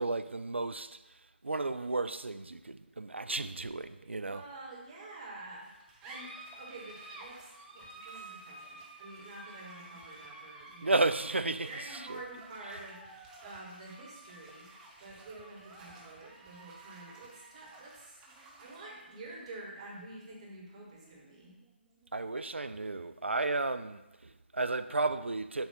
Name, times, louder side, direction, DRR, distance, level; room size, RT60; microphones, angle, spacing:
voice 1, 0.0-4.4 10.8-12.2 22.1-25.7, right 3 dB, 80° right, 0.4 m, -33 dB
voice 2, 4.0-10.9 11.6-14.7 15.0-18.2 18.6-21.5, right 2 dB, 30° right, 1.6 m, -48 dB
sound 1, 5.6-22.6, right 2 dB, 10° right, 0.5 m, -52 dB
6.9 x 2.9 x 5.6 m
figure-of-eight pair, 150°, 6 cm